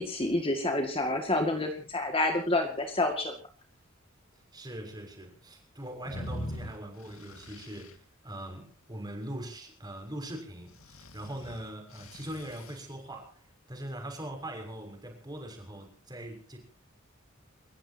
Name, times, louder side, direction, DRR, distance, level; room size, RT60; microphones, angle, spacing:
voice 1, 0.0-3.3, left 2 dB, 25° left, 2.1 m, -28 dB
voice 2, 4.5-16.6, right 1 dB, 20° right, 6.3 m, -41 dB
sound 1, 6.0-7.9 10.7-12.8, left 1 dB, 85° left, 2.1 m, -42 dB
30.0 x 15.0 x 2.9 m
head